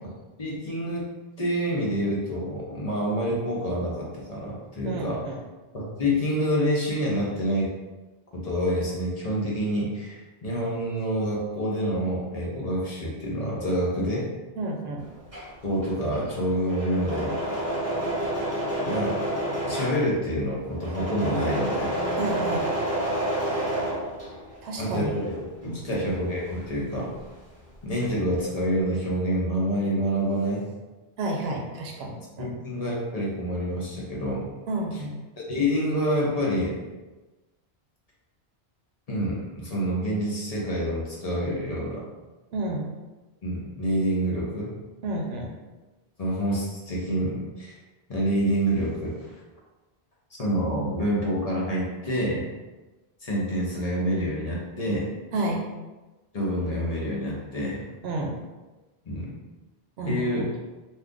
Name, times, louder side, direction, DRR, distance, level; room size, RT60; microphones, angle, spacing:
voice 1, 0.4-1.1 1.4-5.2 5.7-7.7 8.3-14.3 15.6-17.4 18.8-19.2 19.6-21.9 24.8-25.4 25.6-27.1 27.8-30.6 32.4-34.4 35.4-36.8 39.1-42.0 43.4-44.7 46.2-47.8 48.1-49.3 50.4-52.5 53.2-55.1 56.3-57.8 59.0-59.3 60.0-60.4, equal, 40° left, -5 dB, 0.7 m, -27 dB
voice 2, 4.8-5.4 14.6-15.0 22.2-22.7 24.6-25.1 25.6-26.0 31.2-32.6 34.7-35.2 42.5-42.9 45.0-45.5 55.3-55.6 58.0-58.4 60.0-60.5, right 2 dB, 75° right, 1 dB, 0.9 m, -30 dB
Engine / Mechanisms, 15.1-24.7 25.0-27.4 27.6-28.3, right 1 dB, 15° right, 1.0 m, -30 dB
2.6 x 2.4 x 3.5 m, 1.2 s
omnidirectional pair, 1.1 m